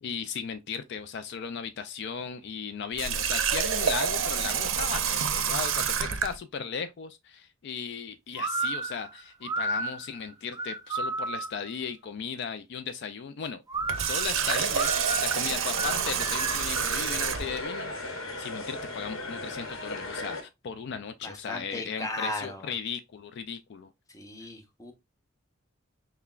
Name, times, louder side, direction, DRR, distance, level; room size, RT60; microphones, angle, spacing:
voice 1, 0.0-13.6 14.0-23.9, left 6 dB, 60° left, 0.3 m, -36 dB
Water tap faucet, 3.0-6.4 13.8-17.6, right 8 dB, 75° right, 0.5 m, -28 dB
sound 1, 8.4-11.7 13.7-16.8, right 3 dB, 20° right, 0.3 m, -33 dB
sound 2, 14.3-20.4, left 2 dB, 80° left, 1.0 m, -38 dB
voice 2, 21.2-22.7 24.1-24.9, left 1 dB, 15° left, 0.7 m, -36 dB
5.7 x 2.2 x 2.3 m
head